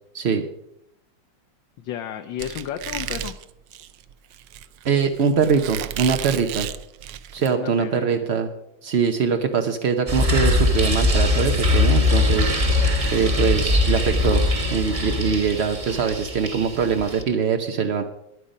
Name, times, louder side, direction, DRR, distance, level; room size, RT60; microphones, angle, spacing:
voice 1, 1.8-3.3 7.4-8.1 13.6-13.8, left 10 dB, 75° left, 6 dB, 1.5 m, -33 dB
Squeak, 2.4-7.5, right 10 dB, 75° right, 1.3 m, -33 dB
voice 2, 4.8-6.7 7.3-8.5 8.8-12.8 13.1-14.4 14.7-18.0, right 6 dB, 55° right, 4 dB, 0.7 m, -22 dB
sound 1, 10.1-17.2, left 2 dB, 25° right, 0.8 m, -21 dB
13.0 x 10.0 x 5.3 m, 0.82 s
omnidirectional pair, 2.1 m